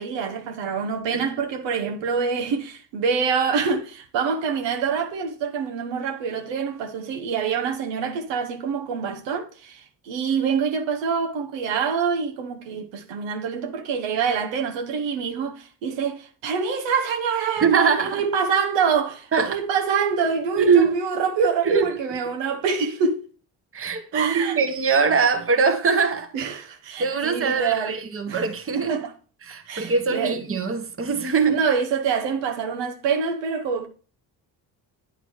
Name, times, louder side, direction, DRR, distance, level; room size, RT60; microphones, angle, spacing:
voice 1, 0.0-23.3 24.1-24.6 26.3-28.0 28.3-28.4 28.7-29.1 29.7-30.4 31.5-33.9, right 6 dB, 85° right, 1.1 m, -26 dB
voice 2, 17.6-18.2 19.3-19.6 20.6-20.9 21.6-21.9 23.7-26.3 27.0-28.9 29.5-31.6, right 5 dB, 30° right, 1.1 m, -22 dB
9.0 x 4.0 x 4.6 m
supercardioid pair, 75°, 44 cm